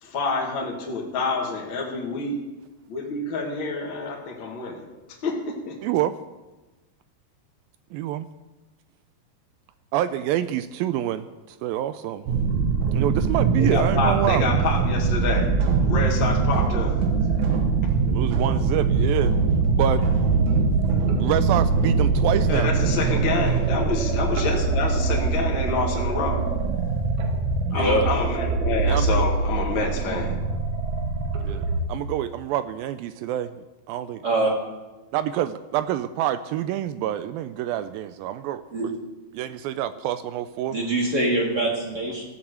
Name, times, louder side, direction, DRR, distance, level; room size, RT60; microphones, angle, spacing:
voice 1, 0.0-2.4 2.9-5.8 13.6-15.5 15.8-17.0 22.5-26.4 27.7-30.4, left 3 dB, 40° left, -1 dB, 2.0 m, -28 dB
voice 2, 5.8-6.2 7.9-8.3 9.9-12.2 12.9-14.5 18.1-19.4 19.7-20.0 21.1-22.7 27.7-27.9 28.8-29.2 31.4-33.5 33.9-34.2 35.1-38.6 39.3-40.8, right 12 dB, 85° right, 12 dB, 2.1 m, -27 dB
sound 1, 12.3-31.8, right 4 dB, 65° right, 2.0 m, -22 dB
voice 3, 27.7-28.0 34.2-34.5 38.7-38.9 40.7-42.2, right 2 dB, 40° right, -1 dB, 1.6 m, -23 dB
15.0 x 7.3 x 7.9 m, 1.1 s
omnidirectional pair, 4.6 m